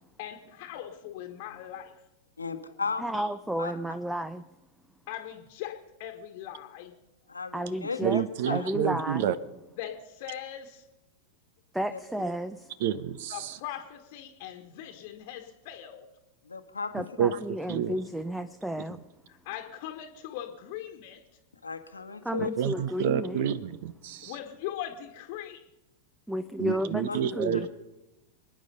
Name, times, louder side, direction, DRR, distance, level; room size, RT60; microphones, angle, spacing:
voice 1, 0.2-2.0 5.1-7.0 9.8-10.9 13.3-16.0 19.3-21.2 24.2-25.6, left 11 dB, 50° left, 5 dB, 1.4 m, -40 dB
voice 2, 2.4-3.2 3.6-3.7 7.3-8.7 11.9-12.0 16.5-16.9 21.6-22.5 26.7-26.8 27.1-27.2 27.5-27.6, left 4 dB, 80° left, 8 dB, 1.3 m, -35 dB
voice 3, 3.0-4.4 7.5-8.2 8.5-9.3 11.7-12.7 16.9-19.0 22.2-23.4 26.3-27.7, equal, 5° right, 12 dB, 0.6 m, -32 dB
voice 4, 8.0-9.3 12.8-13.6 17.2-17.4 17.7-18.0 22.6-24.3 26.6-27.7, right 9 dB, 55° right, 18 dB, 0.8 m, -29 dB
27.5 x 9.6 x 5.4 m, 0.99 s
figure-of-eight pair, 90°, 0 cm